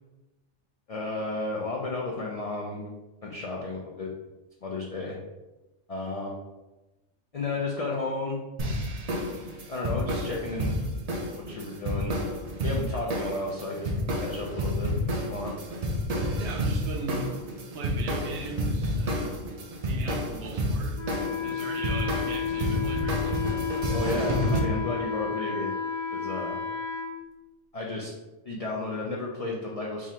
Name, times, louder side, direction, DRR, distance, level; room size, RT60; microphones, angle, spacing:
voice 1, 0.9-2.9 3.2-4.1 4.6-5.2 5.9-6.4 7.3-8.4 9.7-10.8 11.4-12.2 12.6-13.9 14.2-14.9 15.3-15.5 23.9-25.8 26.1-26.6 27.7-28.1 28.5-30.1, left 2 dB, 75° left, -2 dB, 0.3 m, -33 dB
sound 1, 8.6-24.6, equal, 50° right, 0.4 m, -30 dB
voice 2, 16.3-17.3 17.7-19.4 19.8-21.0 21.4-23.4, right 4 dB, 70° right, 3 dB, 0.8 m, -38 dB
Wind instrument woodwind instrument, 20.9-27.1, left 6 dB, 55° left, 0.8 m, -32 dB
3.7 x 2.5 x 4.1 m, 1.1 s
omnidirectional pair, 1.3 m